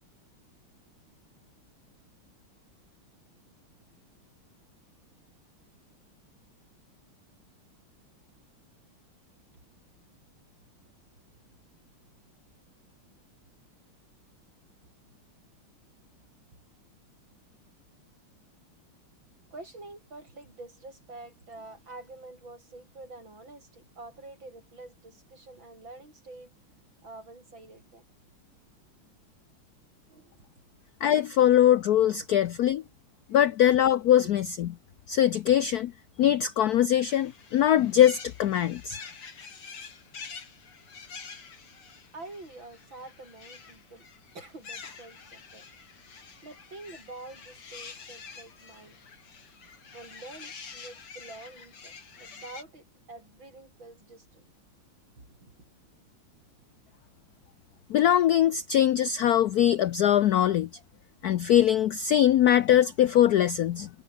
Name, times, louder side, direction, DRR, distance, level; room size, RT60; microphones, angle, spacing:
voice 1, 19.5-26.5 27.0-28.0 30.1-30.5 32.6-32.7 34.2-34.3 42.1-44.1 44.3-45.7 46.4-49.0 49.9-54.5 55.2-55.5, right 2 dB, 60° right, 8.1 m, -47 dB
voice 2, 31.0-32.8 33.3-34.7 35.1-35.9 36.2-39.0 57.9-60.7 61.2-63.9, left 11 dB, 70° left, 0.9 m, -22 dB
sound 1, 36.9-52.6, left 5 dB, 85° left, 4.1 m, -47 dB
omnidirectional pair, 2.3 m